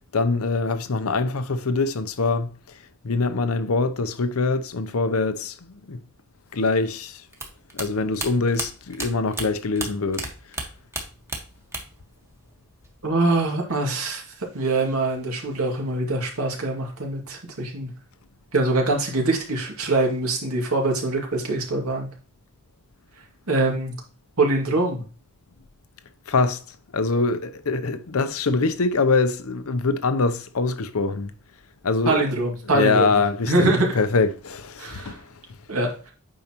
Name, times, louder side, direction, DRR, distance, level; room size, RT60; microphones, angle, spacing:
voice 1, 0.1-2.8 3.0-6.0 6.5-7.2 7.7-10.3 26.3-31.3 31.8-32.2 32.6-35.3, left 3 dB, 70° left, 0.7 m, -24 dB
sound 1, 7.3-10.3 10.5-12.1 12.3-13.1, right 2 dB, 10° right, 1.4 m, -32 dB
voice 2, 13.0-14.2 14.5-17.9 18.5-22.1 23.5-23.9 24.4-25.0 32.1-33.1 33.5-34.0 34.8-35.2 35.7-36.1, right 2 dB, 70° right, 2.3 m, -23 dB
8.8 x 5.4 x 3.0 m
head